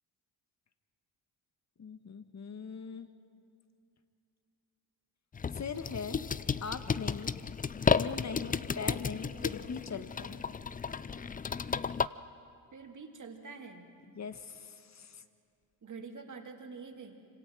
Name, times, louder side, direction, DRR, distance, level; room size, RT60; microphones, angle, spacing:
voice 1, 1.8-3.1 5.5-6.2 6.6-7.3 8.0-10.4 14.1-15.2, left 5 dB, 35° left, 9 dB, 1.5 m, -41 dB
sound 1, 5.3-12.1, left 6 dB, 20° left, 0.4 m, -33 dB
voice 2, 12.7-13.9 15.8-17.3, right 4 dB, 40° right, 3 dB, 2.8 m, -46 dB
26.0 x 25.5 x 4.7 m, 2.5 s
supercardioid pair, 65°, 44 cm